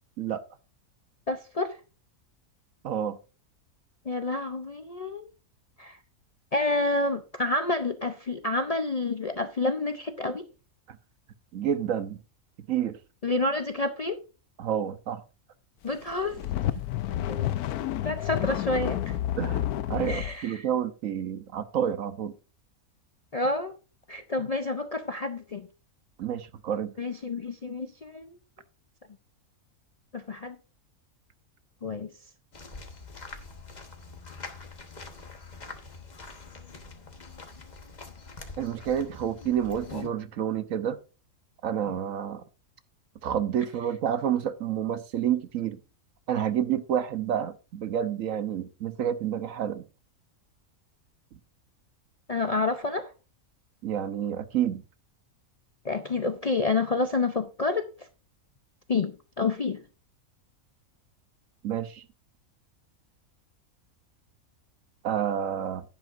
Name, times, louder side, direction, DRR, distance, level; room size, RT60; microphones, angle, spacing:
voice 1, 1.3-1.8 4.0-5.3 5.8-6.0 6.5-10.5 13.2-14.2 15.8-16.4 17.1-17.5 18.0-19.2 20.1-20.6 23.3-23.8 24.1-25.7 27.0-28.4 30.1-30.6 31.8-32.1 52.3-53.1 55.8-58.1 58.9-59.8, left 3 dB, 55° left, 0.4 m, -29 dB
voice 2, 2.8-3.2 11.5-12.2 12.7-13.0 14.6-15.2 19.4-22.3 26.2-26.9 38.6-41.0 41.6-42.4 43.2-45.8 46.3-49.8 53.8-54.8 61.6-62.0 65.0-65.8, right 9 dB, 65° right, 1.2 m, -29 dB
sound 1, 16.1-20.4, left 12 dB, 90° left, 1.1 m, -30 dB
sound 2, 32.5-40.1, left 3 dB, 30° left, 1.2 m, -44 dB
10.5 x 10.5 x 2.5 m
omnidirectional pair, 1.5 m